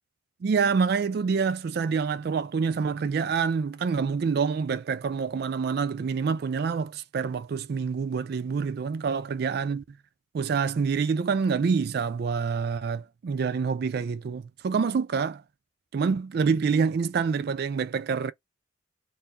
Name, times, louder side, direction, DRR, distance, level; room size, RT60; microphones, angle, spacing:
voice 1, 0.4-9.8 10.3-15.4 15.9-18.3, right 5 dB, 50° right, 0.3 m, -27 dB
4.3 x 2.6 x 4.1 m
head